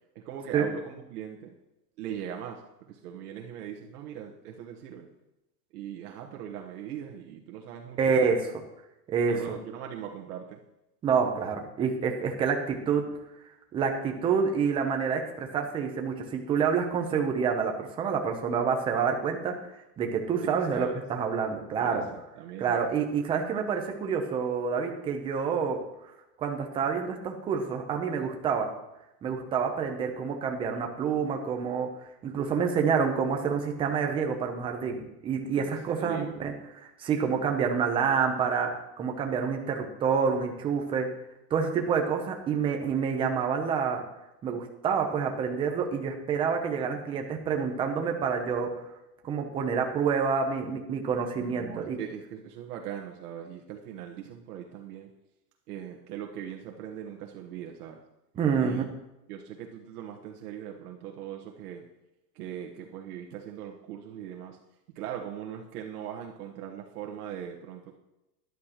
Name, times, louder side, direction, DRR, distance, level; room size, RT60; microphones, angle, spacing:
voice 1, 0.1-1.5 2.0-5.1 5.7-8.0 9.2-10.6 20.4-21.0 21.8-22.8 35.6-36.4 51.4-55.1 55.7-58.0 58.6-58.8 59.3-61.9 62.3-64.6 64.9-68.0, right 9 dB, 70° right, 1 dB, 1.3 m, -40 dB
voice 2, 8.0-8.5 9.1-9.5 11.0-13.0 13.7-19.5 20.0-22.1 22.6-25.8 26.4-28.7 29.2-31.9 32.2-38.7 39.0-41.1 41.5-44.0 44.4-48.7 49.2-52.0 58.4-58.8, right 6 dB, 10° right, 3 dB, 0.6 m, -28 dB
13.0 x 11.0 x 2.9 m, 0.92 s
supercardioid pair, 170°, 48 cm